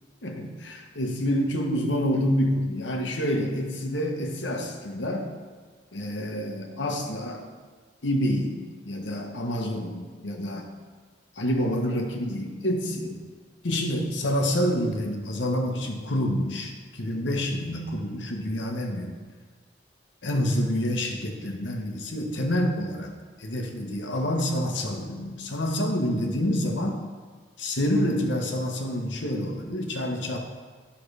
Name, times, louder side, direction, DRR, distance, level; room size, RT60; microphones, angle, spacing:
voice 1, 0.2-5.3 5.9-7.4 8.0-8.6 8.8-10.7 11.3-13.2 13.6-19.1 20.2-23.1 23.4-27.0 27.6-30.4, equal, 85° left, 2 dB, 1.1 m, -27 dB
11.5 x 5.7 x 3.3 m, 1.5 s
head